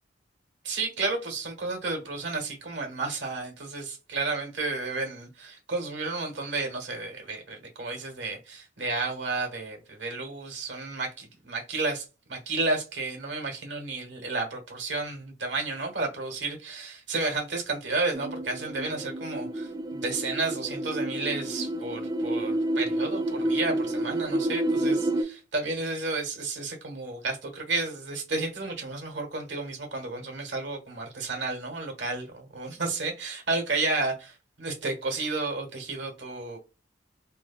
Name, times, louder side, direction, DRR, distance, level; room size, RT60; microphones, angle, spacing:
voice 1, 0.6-12.0 12.3-36.6, right 3 dB, 70° right, 1.2 m, -32 dB
sound 1, 18.1-25.2, right 1 dB, 20° right, 0.4 m, -29 dB
3.2 x 2.2 x 2.4 m
head